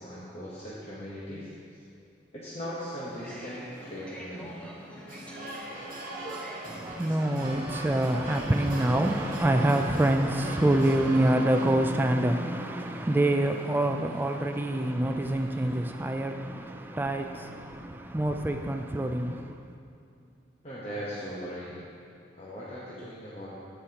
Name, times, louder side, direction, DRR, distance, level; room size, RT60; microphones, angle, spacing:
voice 1, 0.0-1.5 2.3-4.6 20.6-21.8 22.3-23.5, equal, 30° left, 1.1 m, -39 dB
sound 1, 3.1-15.8, equal, 5° left, 0.8 m, -47 dB
sound 2, 5.1-11.7, right 2 dB, 45° right, 1.2 m, -40 dB
voice 2, 6.7-19.6, right 1 dB, 10° right, 0.3 m, -26 dB
14.5 x 5.6 x 2.9 m
head